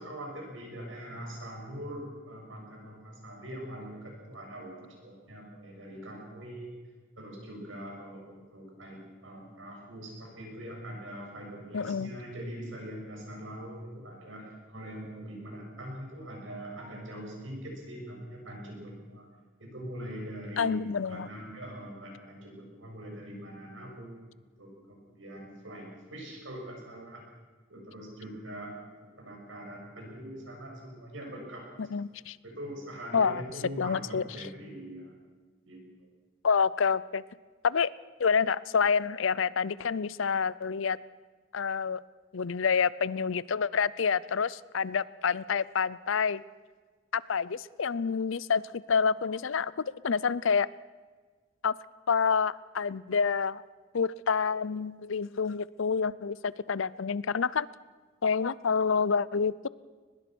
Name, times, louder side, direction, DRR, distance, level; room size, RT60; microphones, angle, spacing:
voice 1, 0.0-6.7 7.2-19.3 19.6-20.8 21.1-24.2 24.6-27.2 27.7-28.9 29.2-31.9 32.4-35.1 35.7-35.8, right 1 dB, 70° right, 0 dB, 7.4 m, -42 dB
voice 2, 11.7-12.1 20.6-21.3 31.9-32.4 33.1-33.4 33.8-34.2 36.4-37.2 37.6-37.9 38.2-41.0 41.5-42.0 42.3-46.4 47.1-48.6 48.9-50.7 51.6-51.7 52.1-53.6 53.9-57.7 58.2-59.7, left 6 dB, 75° left, 20 dB, 0.6 m, -28 dB
23.0 x 20.5 x 6.2 m, 1.4 s
head